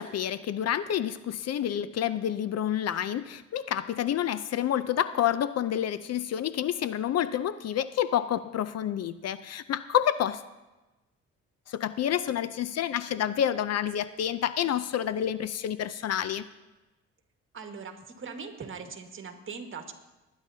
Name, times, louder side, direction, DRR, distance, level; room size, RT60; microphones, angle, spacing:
voice 1, 0.0-10.4 11.7-16.4, left 10 dB, 55° left, 14 dB, 0.5 m, -29 dB
voice 2, 17.5-19.9, right 5 dB, 40° right, 4 dB, 1.7 m, -40 dB
21.0 x 9.7 x 2.8 m, 1.1 s
cardioid pair, 90°, 30 cm